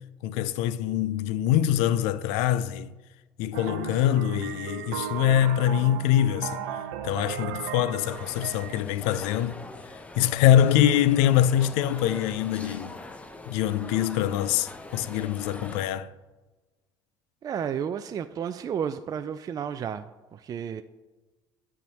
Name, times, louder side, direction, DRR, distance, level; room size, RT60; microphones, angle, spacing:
voice 1, 0.2-2.9 3.4-6.6 7.0-9.6 10.1-13.0 13.5-16.1, left 11 dB, 75° left, 0.4 m, -24 dB
sound 1, 3.5-8.8, right 9 dB, 85° right, 0.6 m, -36 dB
sound 2, 8.1-15.9, left 2 dB, 10° left, 0.7 m, -43 dB
voice 2, 17.4-20.8, right 8 dB, 35° right, 0.4 m, -32 dB
9.1 x 3.6 x 6.8 m
supercardioid pair, 85°, 11 cm